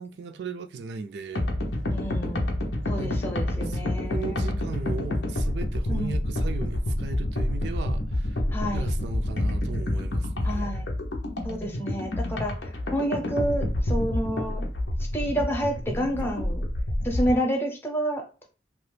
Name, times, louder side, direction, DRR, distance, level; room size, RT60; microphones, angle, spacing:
voice 1, 0.0-1.5 2.9-8.4 8.7-10.8 16.2-16.3, right 5 dB, 70° right, 0.3 m, -37 dB
sound 1, 1.4-17.4, left 1 dB, 85° left, 0.7 m, -28 dB
voice 2, 1.9-2.5 2.9-4.6 5.9-6.1 8.5-8.9 10.4-10.9 11.4-14.6 15.1-16.6 17.0-18.5, equal, 15° left, 0.7 m, -29 dB
2.8 x 2.3 x 3.2 m
head